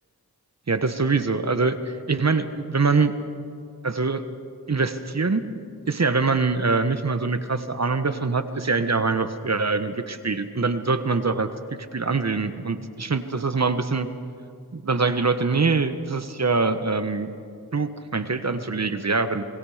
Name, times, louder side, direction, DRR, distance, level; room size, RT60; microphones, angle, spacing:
voice 1, 0.7-3.1 3.8-4.3 4.7-5.4 5.9-11.5 11.9-14.1 14.7-17.3 17.7-19.4, right 4 dB, 45° right, 10 dB, 1.3 m, -24 dB
28.0 x 21.0 x 5.1 m, 2.4 s
cardioid pair, 60°, 38 cm